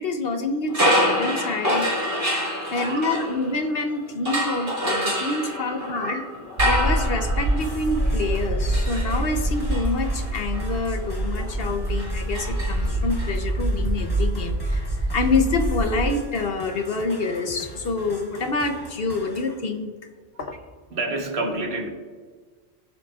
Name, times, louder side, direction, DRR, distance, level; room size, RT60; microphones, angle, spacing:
voice 1, 0.0-1.9 2.7-6.2 6.6-19.9 20.4-20.6, left 3 dB, 60° left, 6 dB, 1.0 m, -27 dB
sound 1, 0.7-3.8 4.2-13.3, equal, 45° right, 2.5 m, -27 dB
voice 2, 2.4-3.1 5.3-6.4 20.9-21.9, right 2 dB, 65° right, 2 dB, 1.5 m, -31 dB
sound 2, 6.6-16.1, right 1 dB, 85° right, 2.5 m, -25 dB
sound 3, 7.6-19.6, left 1 dB, 20° left, 1.1 m, -43 dB
17.0 x 7.4 x 2.4 m, 1.5 s
omnidirectional pair, 1.1 m